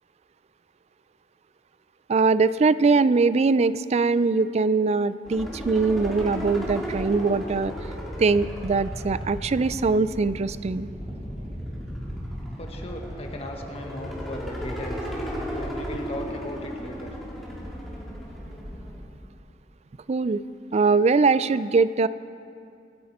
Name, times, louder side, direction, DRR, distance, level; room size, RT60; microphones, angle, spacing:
voice 1, 2.1-7.7 8.2-10.9 20.1-20.4 20.7-22.1, right 4 dB, 40° right, 15 dB, 0.4 m, -22 dB
sound 1, 5.3-19.0, equal, ahead, 2.6 m, -34 dB
voice 2, 12.6-15.0 15.5-17.2, left 1 dB, 35° left, 2 dB, 1.6 m, -37 dB
26.0 x 10.0 x 4.3 m, 2.5 s
head